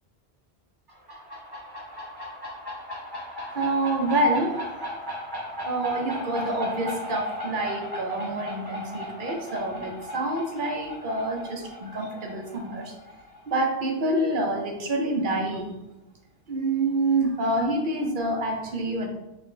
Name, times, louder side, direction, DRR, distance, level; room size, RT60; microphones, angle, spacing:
sound 1, 0.9-14.3, left 1 dB, 20° right, 1.1 m, -37 dB
voice 1, 3.5-4.8 5.6-12.9 13.5-15.7 16.5-19.1, right 2 dB, 55° right, 2 dB, 0.9 m, -27 dB
5.3 x 2.5 x 3.2 m, 1.0 s
omnidirectional pair, 1.1 m